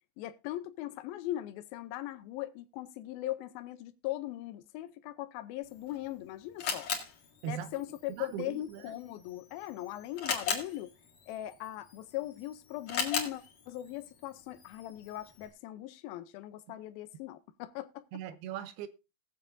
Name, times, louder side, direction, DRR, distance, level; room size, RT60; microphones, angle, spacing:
voice 1, 0.2-6.9 7.4-10.9 11.3-18.0, left 14 dB, 80° left, 2.3 m, -40 dB
Camera, 5.6-15.5, left 6 dB, 50° left, 3.0 m, -40 dB
voice 2, 7.4-7.7 8.1-8.9 18.1-18.9, right 10 dB, 80° right, 2.7 m, -39 dB
19.5 x 7.4 x 2.6 m
omnidirectional pair, 4.6 m